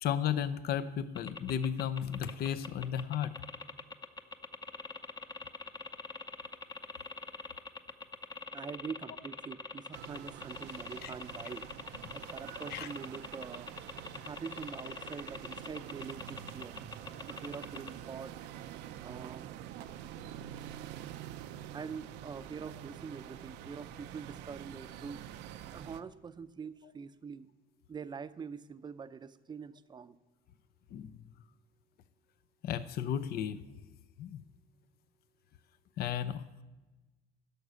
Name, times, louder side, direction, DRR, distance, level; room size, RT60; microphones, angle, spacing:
voice 1, 0.0-3.3 11.0-11.1 12.7-12.9 30.9-31.1 32.6-33.6 34.2-34.4 36.0-36.4, left 9 dB, 65° left, 13 dB, 0.6 m, -34 dB
sound 1, 1.1-17.9, left 4 dB, 25° left, 0.7 m, -43 dB
voice 2, 8.5-11.6 12.1-13.7 14.1-16.8 17.3-18.3 19.0-19.5 21.7-25.2 25.7-27.5 27.9-30.2, right 6 dB, 25° right, 13 dB, 0.5 m, -44 dB
sound 2, 9.9-26.0, right 11 dB, 90° right, 0.6 m, -47 dB
11.0 x 6.5 x 8.2 m, 1.1 s
cardioid pair, 110°, 17 cm